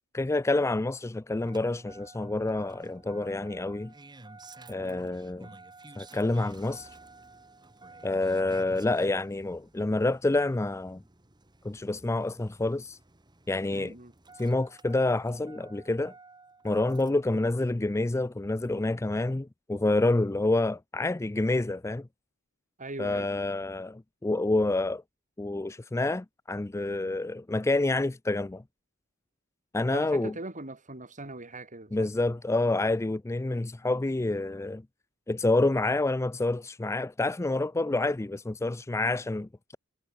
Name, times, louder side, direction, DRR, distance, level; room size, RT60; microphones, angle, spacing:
voice 1, 0.1-3.9 4.7-5.5 6.0-6.9 8.0-11.0 11.6-13.0 13.5-13.9 14.4-16.1 16.6-22.1 23.0-25.0 25.4-28.6 29.7-30.3 31.9-34.8 35.3-39.8, left 2 dB, 15° left, 0.4 m, -28 dB
Engine starting, 1.4-17.3 18.6-18.7, right 3 dB, 20° right, 1.9 m, -52 dB
voice 2, 4.8-5.2 13.7-14.1 22.8-23.3 29.9-32.1, right 2 dB, 35° right, 3.9 m, -41 dB
head